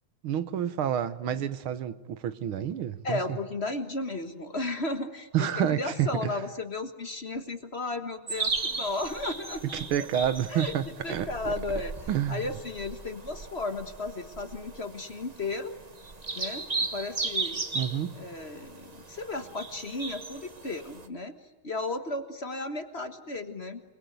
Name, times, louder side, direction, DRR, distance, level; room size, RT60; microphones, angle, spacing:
voice 1, 0.2-3.4 5.3-6.3 9.7-11.5 12.1-12.4 17.7-18.2, right 9 dB, 80° right, 2.0 m, -29 dB
voice 2, 3.0-9.7 10.0-10.1 10.5-10.7 11.0-11.9 12.3-15.8 16.3-17.6 18.2-21.3 21.6-23.8, left 2 dB, 35° left, 1.5 m, -34 dB
sound 1, 8.3-21.1, right 3 dB, 25° right, 1.1 m, -36 dB
28.5 x 21.5 x 9.4 m
omnidirectional pair, 2.3 m